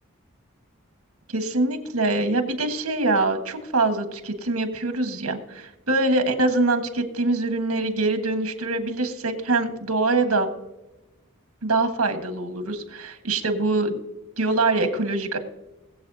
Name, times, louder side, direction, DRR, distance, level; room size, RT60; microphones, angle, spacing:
voice 1, 1.3-10.5 11.6-14.0 14.4-15.4, right 2 dB, 80° right, 6 dB, 1.5 m, -24 dB
21.5 x 7.6 x 2.7 m, 0.97 s
head